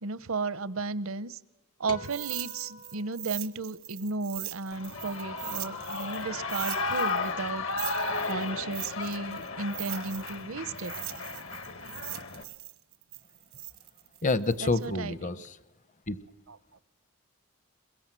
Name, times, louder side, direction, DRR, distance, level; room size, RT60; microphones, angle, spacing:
voice 1, 0.0-1.4 1.8-7.6 7.9-10.9 14.6-15.4 16.5-16.8, right 3 dB, 70° right, 17 dB, 0.8 m, -34 dB
sound 1, 1.9-4.4, left 2 dB, 90° left, 2.2 m, -48 dB
sound 2, 2.0-6.2 6.5-10.4 10.8-14.9, right 17 dB, 85° right, 1.3 m, -40 dB
Shout / Cheering, 4.7-12.4, left 3 dB, 65° left, 1.4 m, -34 dB
voice 2, 14.2-15.6 16.1-16.2, left 3 dB, 35° left, 15 dB, 0.8 m, -28 dB
22.0 x 22.0 x 7.6 m, 0.93 s
head